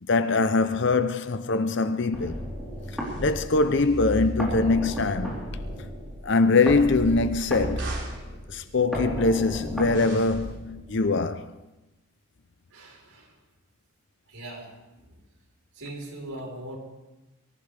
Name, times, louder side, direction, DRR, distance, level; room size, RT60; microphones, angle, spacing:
voice 1, 0.0-2.4 3.2-5.4 6.2-8.0 8.5-11.5, left 3 dB, 55° left, 0.6 m, -23 dB
sound 1, 2.1-11.1, equal, ahead, 3.7 m, -33 dB
sound 2, 2.8-4.3 6.5-8.3 9.9-10.6, right 3 dB, 55° right, 3.1 m, -45 dB
voice 2, 12.7-13.3 14.3-14.7 15.1-15.2 15.8-16.8, right 1 dB, 90° right, 4.4 m, -40 dB
23.5 x 14.5 x 3.4 m
head